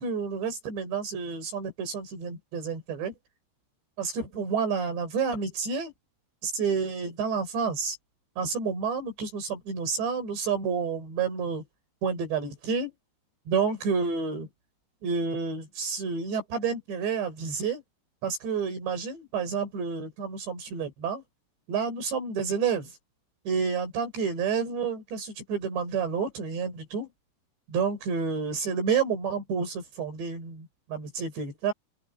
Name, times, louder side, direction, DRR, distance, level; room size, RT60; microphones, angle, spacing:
voice 1, 0.0-3.1 4.0-5.9 6.4-8.0 8.4-11.6 12.0-12.9 13.5-14.5 15.0-17.8 18.2-21.2 21.7-23.0 23.5-27.1 27.7-31.7, right 5 dB, 80° right, 7.8 m, -29 dB
open air
omnidirectional pair, 5.0 m